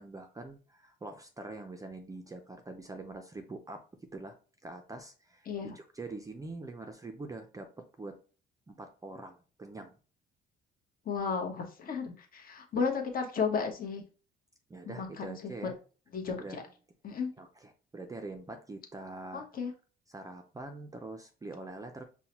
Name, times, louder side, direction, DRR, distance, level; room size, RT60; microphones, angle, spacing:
voice 1, 0.0-3.9 4.1-4.4 4.6-8.2 8.7-10.0 14.7-15.8 16.4-16.6 17.4-17.5 17.9-19.4 20.1-22.0, right 2 dB, 15° right, 5 dB, 0.4 m, -44 dB
voice 2, 5.4-5.7 11.0-14.0 14.8-15.7 16.1-16.6 17.0-17.3 19.3-19.7, left 5 dB, 45° left, 2 dB, 0.9 m, -34 dB
5.4 x 2.1 x 2.9 m, 0.37 s
cardioid pair, 115°, 21 cm